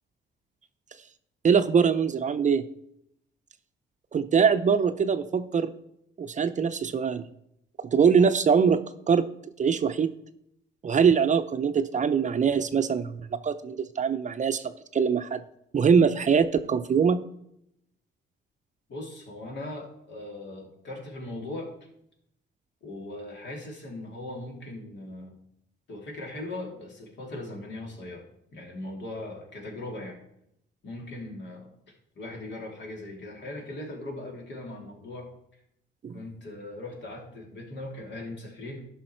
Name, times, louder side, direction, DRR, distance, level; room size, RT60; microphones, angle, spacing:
voice 1, 1.4-2.6 4.1-5.7 6.2-7.2 7.9-8.8 9.1-9.3 9.6-10.1 10.8-15.4 15.7-17.2 36.0-36.2, right 6 dB, 40° right, 10 dB, 0.6 m, -23 dB
voice 2, 18.9-21.7 22.8-25.3 25.9-28.2 28.5-30.2 30.8-35.3 36.1-38.8, left 2 dB, 60° left, 0 dB, 2.8 m, -39 dB
11.5 x 5.7 x 4.4 m, 0.75 s
cardioid pair, 90°, 20 cm